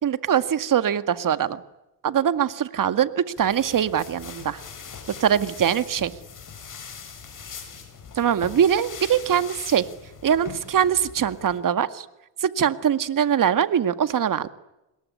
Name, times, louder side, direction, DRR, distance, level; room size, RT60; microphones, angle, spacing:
voice 1, 0.0-1.6 2.0-4.6 5.1-6.1 8.2-9.9 10.2-12.1 12.4-14.5, right 9 dB, 40° right, 11 dB, 2.0 m, -22 dB
sound 1, 3.4-11.6, left 6 dB, 40° left, 7.8 m, -41 dB
27.0 x 21.5 x 9.9 m, 0.94 s
supercardioid pair, 85°, 50 cm